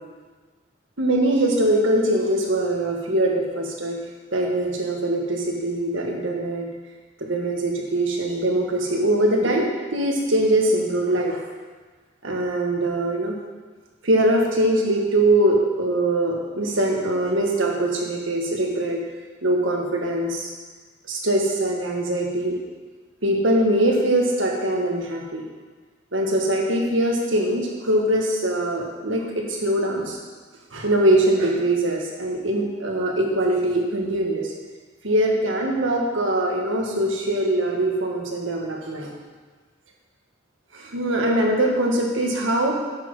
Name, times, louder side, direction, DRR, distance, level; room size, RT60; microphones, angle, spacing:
voice 1, 1.0-4.0 4.3-6.6 7.2-9.7 9.9-11.5 12.2-13.4 14.0-19.0 19.4-20.5 21.1-22.6 23.2-25.4 26.1-30.2 30.7-34.5 35.0-39.1 40.7-42.7, right 1 dB, 85° right, 0 dB, 1.6 m, -22 dB
8.9 x 6.2 x 5.5 m, 1.4 s
head